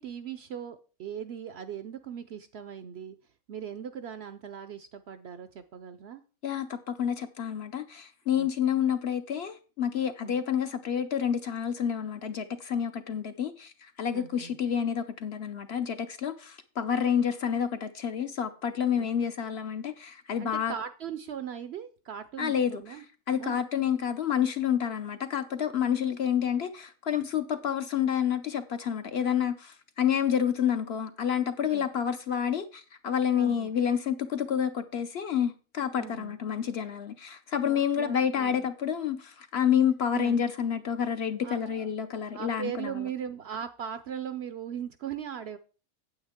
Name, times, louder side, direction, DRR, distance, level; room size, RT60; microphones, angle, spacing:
voice 1, 0.0-3.2 3.5-6.2 8.4-8.5 10.2-10.4 14.1-14.6 19.0-19.1 20.4-23.0 23.4-23.6 31.7-31.9 33.3-33.8 36.0-36.4 37.6-38.7 40.1-40.4 41.4-41.9 42.3-45.6, right 8 dB, 65° right, 0.7 m, -39 dB
voice 2, 6.4-20.7 22.4-43.1, left 8 dB, 60° left, 0.8 m, -29 dB
8.7 x 8.1 x 3.6 m
omnidirectional pair, 1.5 m